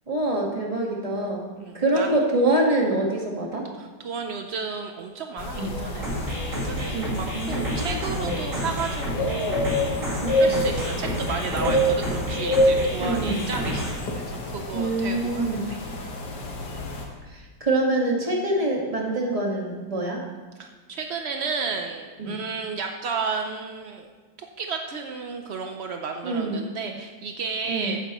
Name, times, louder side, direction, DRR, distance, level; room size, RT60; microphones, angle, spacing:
voice 1, 0.1-1.5 1.7-3.6 5.6-5.7 6.9-8.0 10.2-10.6 13.0-13.4 14.7-15.7 17.3-20.2 22.2-22.4 26.2-26.6 27.7-28.0, right 2 dB, 20° right, -1 dB, 1.5 m, -25 dB
voice 2, 1.6-2.2 3.8-6.2 6.5-9.9 10.4-15.8 20.6-24.1 24.4-28.0, right 5 dB, 70° right, 4 dB, 0.6 m, -33 dB
sound 1, 5.4-17.0, left 1 dB, 65° left, 2.0 m, -27 dB
sound 2, 6.0-14.0, equal, 45° right, 2.9 m, -31 dB
14.5 x 9.5 x 3.0 m, 1.4 s
omnidirectional pair, 2.0 m